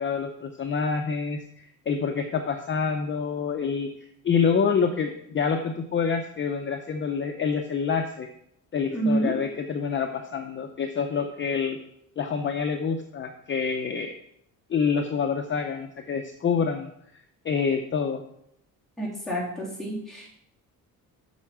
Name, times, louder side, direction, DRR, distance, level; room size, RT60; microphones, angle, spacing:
voice 1, 0.0-3.9 4.2-8.3 8.7-11.8 12.2-14.1 14.7-16.9 17.4-18.2, left 6 dB, 35° left, 4 dB, 0.6 m, -27 dB
voice 2, 8.9-9.3 19.0-20.3, right 1 dB, ahead, -6 dB, 3.1 m, -28 dB
8.2 x 5.7 x 6.1 m, 0.74 s
cardioid pair, 150°, 34 cm